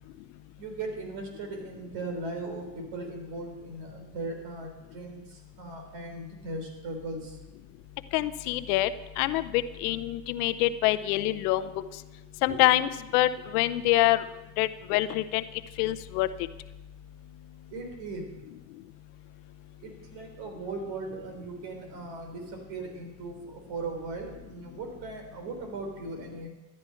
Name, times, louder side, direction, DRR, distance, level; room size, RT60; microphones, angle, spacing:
voice 1, 0.6-7.4 12.2-12.6 17.7-18.3 19.8-26.5, right 3 dB, 70° right, 4 dB, 3.7 m, -38 dB
voice 2, 8.1-8.9 9.2-11.7 12.4-14.2 14.6-15.4 15.8-16.3, left 15 dB, 80° left, 14 dB, 0.8 m, -25 dB
14.0 x 10.0 x 5.7 m, 1.0 s
hypercardioid pair, 70°, 45 cm